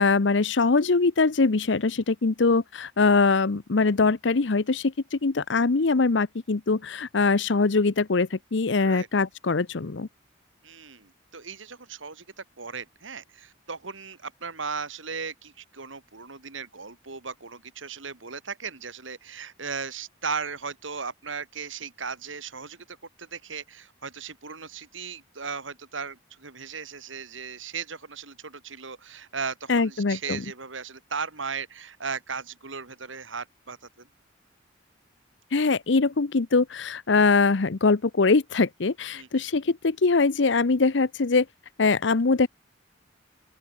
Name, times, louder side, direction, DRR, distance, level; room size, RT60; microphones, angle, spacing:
voice 1, 0.0-10.1 29.7-30.4 35.5-41.5 41.8-42.5, left 4 dB, 65° left, 0.7 m, -22 dB
voice 2, 10.6-34.1 39.1-39.4, right 5 dB, 80° right, 2.7 m, -37 dB
open air
head